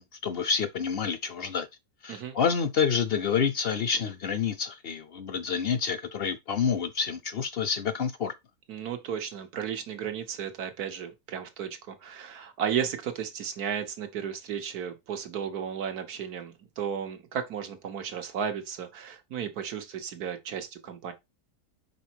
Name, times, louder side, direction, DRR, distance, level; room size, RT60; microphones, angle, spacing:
voice 1, 0.0-1.7 2.0-8.3, left 6 dB, 60° left, 0.6 m, -28 dB
voice 2, 8.7-21.1, right 8 dB, 90° right, 1.6 m, -34 dB
5.5 x 4.1 x 4.5 m
omnidirectional pair, 1.6 m